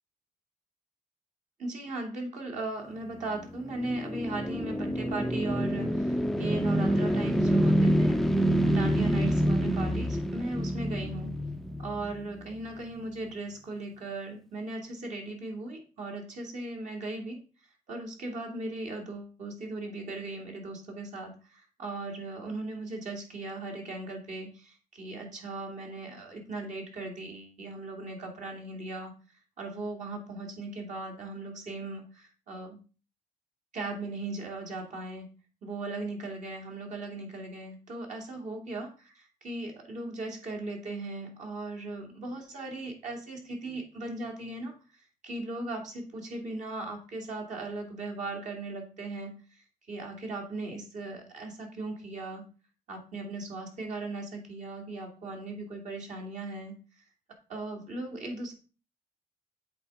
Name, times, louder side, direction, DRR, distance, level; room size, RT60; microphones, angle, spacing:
voice 1, 1.6-11.4 11.8-17.4 17.9-29.1 29.6-32.8 33.7-35.3 35.6-52.4 52.9-56.8 57.5-58.5, right 2 dB, 55° right, 1 dB, 2.7 m, -38 dB
sound 1, 3.3-12.6, equal, ahead, 0.5 m, -27 dB
8.0 x 3.9 x 5.5 m, 0.35 s
cardioid pair, 100°, 14 cm